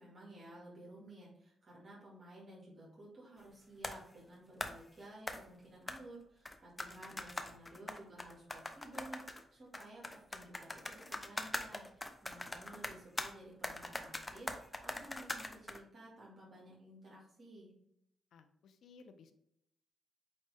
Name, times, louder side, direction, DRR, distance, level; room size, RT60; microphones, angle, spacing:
voice 1, 0.0-17.7, right 1 dB, 50° right, -5 dB, 2.2 m, -54 dB
sound 1, 3.8-4.0 4.6-4.8 5.3-5.4 5.9-6.0 6.4-9.4 9.7-13.3 13.6-15.8, left 1 dB, 20° left, 0.8 m, -42 dB
voice 2, 7.1-7.5 18.3-19.3, left 4 dB, 75° left, 9 dB, 0.6 m, -60 dB
8.5 x 3.2 x 3.4 m, 0.76 s
cardioid pair, 70°, 0 cm